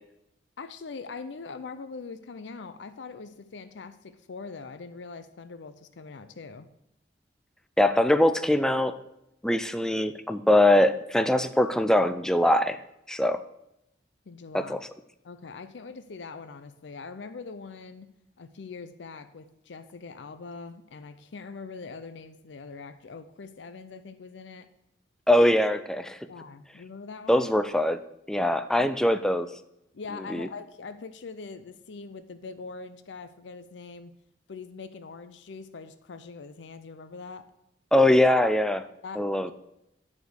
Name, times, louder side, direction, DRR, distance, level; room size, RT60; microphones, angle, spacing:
voice 1, 0.6-6.7 14.3-14.8 15.2-18.1 18.4-24.7 26.2-27.5 28.4-28.9 29.9-34.1 34.5-37.4 39.0-39.5, left 4 dB, 70° left, 11 dB, 0.5 m, -42 dB
voice 2, 7.8-9.0 9.4-12.8 13.1-13.4 14.5-14.9 25.3-26.3 27.3-28.0 28.3-29.5 30.3-30.5 37.9-38.9 39.2-39.5, left 1 dB, 5° left, 11 dB, 0.3 m, -22 dB
9.8 x 4.3 x 6.3 m, 0.85 s
head